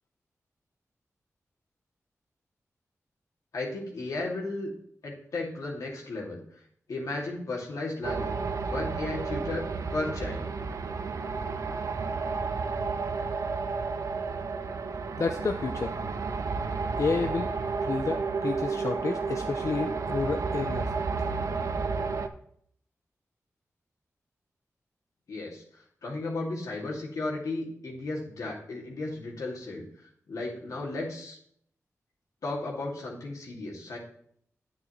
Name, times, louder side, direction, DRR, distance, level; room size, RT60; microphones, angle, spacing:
voice 1, 3.5-4.7 5.0-6.4 6.9-8.3 8.6-10.5 25.3-25.6 26.0-29.8 30.3-31.4 32.4-34.0, left 2 dB, 90° left, -3 dB, 2.5 m, -34 dB
sound 1, 8.0-22.3, right 4 dB, 70° right, 0.7 m, -31 dB
voice 2, 15.2-15.9 17.0-17.5 17.8-20.9, left 4 dB, 60° left, 5 dB, 0.6 m, -30 dB
9.4 x 8.7 x 3.2 m, 0.66 s
cardioid pair, 55°, 6 cm